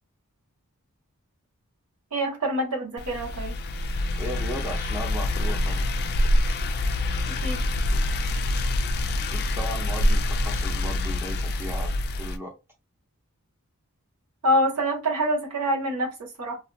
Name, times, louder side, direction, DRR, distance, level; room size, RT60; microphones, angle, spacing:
voice 1, 2.1-3.6 7.3-7.6 14.4-16.6, equal, 85° right, 0.9 m, -26 dB
sound 1, 3.0-12.4, left 1 dB, 45° left, 0.3 m, -26 dB
voice 2, 4.2-5.9 9.1-12.5, equal, 10° right, 0.7 m, -36 dB
2.5 x 2.4 x 2.2 m
head